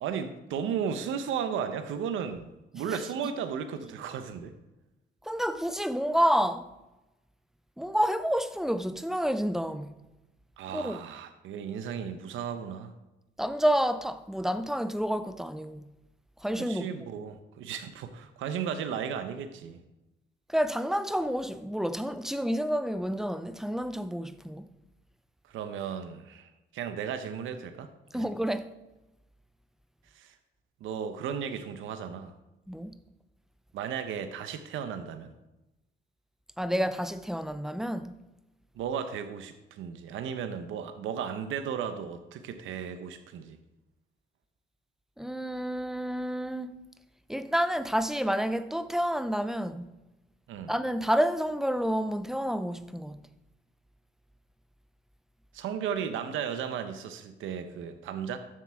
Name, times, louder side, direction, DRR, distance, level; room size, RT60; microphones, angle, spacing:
voice 1, 0.0-4.5 10.6-12.9 16.6-19.8 25.5-28.3 30.1-30.3 30.8-32.3 33.7-35.3 38.7-43.6 50.5-50.7 55.5-58.4, right 7 dB, 85° right, 0.8 m, -35 dB
voice 2, 5.2-6.7 7.8-10.0 10.7-11.0 13.4-15.9 16.4-16.9 20.5-24.7 28.1-28.7 32.7-33.0 36.6-38.2 45.2-46.7 47.3-49.9 50.7-53.2, equal, ahead, 0.6 m, -29 dB
12.5 x 7.6 x 3.5 m
cardioid pair, 90°, 20 cm